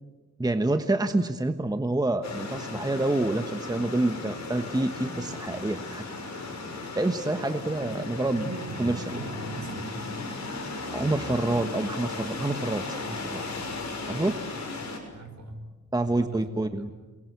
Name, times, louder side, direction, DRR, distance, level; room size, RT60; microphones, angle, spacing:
voice 1, 0.4-6.0 6.9-8.5 8.8-9.0 10.9-12.8 13.1-13.4 14.1-14.4 15.9-16.9, right 2 dB, 15° right, 7 dB, 1.2 m, -27 dB
sound 1, 2.2-15.0, left 3 dB, 65° left, 6.4 m, -36 dB
voice 2, 8.4-10.0 15.1-15.7 16.1-16.5 16.8-17.0, right 3 dB, 65° right, 6 dB, 5.4 m, -39 dB
28.5 x 22.5 x 8.3 m, 1.3 s
wide cardioid pair, 100°, 30 cm